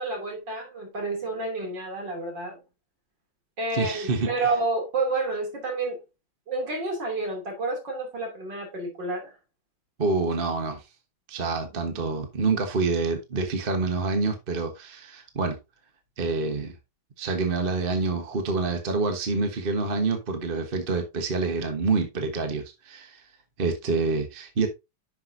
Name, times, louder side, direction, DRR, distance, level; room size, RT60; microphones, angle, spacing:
voice 1, 0.0-2.6 3.6-6.0 6.5-9.3 11.9-12.0, right 3 dB, 60° right, 3.6 m, -30 dB
voice 2, 3.7-4.3 10.0-10.8 11.3-15.6 16.2-16.7 17.2-23.2 23.6-24.7, right 4 dB, 30° right, 1.2 m, -27 dB
10.5 x 6.2 x 2.7 m
omnidirectional pair, 2.2 m